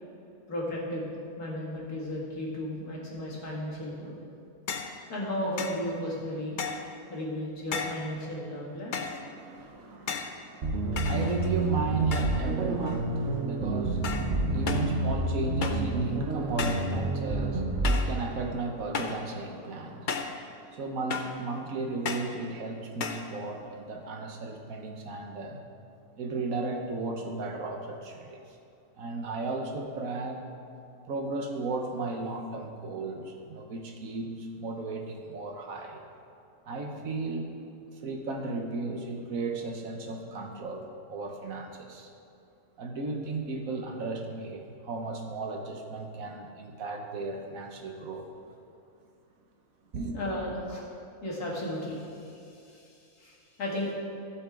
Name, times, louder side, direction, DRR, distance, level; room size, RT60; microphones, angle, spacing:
voice 1, 0.5-1.1 1.4-4.2 5.1-6.6 7.1-9.0 50.1-50.8 51.2-53.9, left 1 dB, 85° left, -4 dB, 2.6 m, -34 dB
sound 1, 4.7-5.0 5.6-5.8 6.6-6.9 7.7-8.1 8.9-9.3 10.1-10.4 11.0-11.6 12.1-12.5 12.8-13.3 14.0-14.3 14.7-14.9 15.6-15.9 16.6-16.9 17.8-18.2 18.9-19.3 20.1-20.4 21.1-21.4 22.0-22.4 23.0-23.3, left 5 dB, 50° left, 0.6 m, -34 dB
voice 2, 9.3-25.6 26.2-28.6 29.0-30.4 31.1-36.2 36.6-37.5 38.0-42.1 42.8-48.3 49.9-50.2, right 3 dB, 65° right, 3 dB, 1.4 m, -35 dB
sound 2, 10.6-18.0, right 2 dB, 50° right, 1.2 m, -29 dB
15.0 x 7.9 x 3.7 m, 2.6 s
omnidirectional pair, 1.6 m